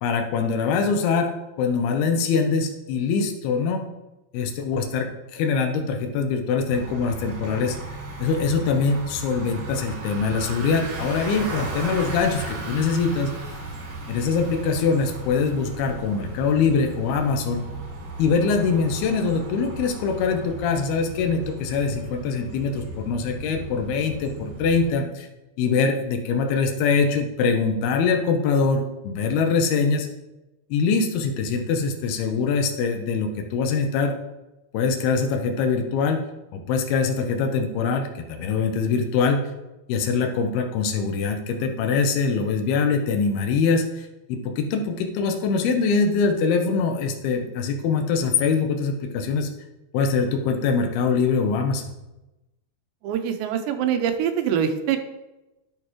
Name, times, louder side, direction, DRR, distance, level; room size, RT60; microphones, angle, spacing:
voice 1, 0.0-1.3 1.6-3.8 4.3-7.8 8.2-13.3 14.1-17.6 18.2-25.3 25.6-30.1 30.7-34.2 34.7-36.2 36.5-39.5 39.9-49.5 49.9-51.8, left 5 dB, 75° left, 4 dB, 2.7 m, -23 dB
Bicycle, 6.7-24.9, right 2 dB, 60° right, 4.7 m, -36 dB
voice 2, 53.0-55.0, right 8 dB, 85° right, 7 dB, 3.0 m, -24 dB
9.9 x 8.4 x 3.1 m, 0.98 s
omnidirectional pair, 5.0 m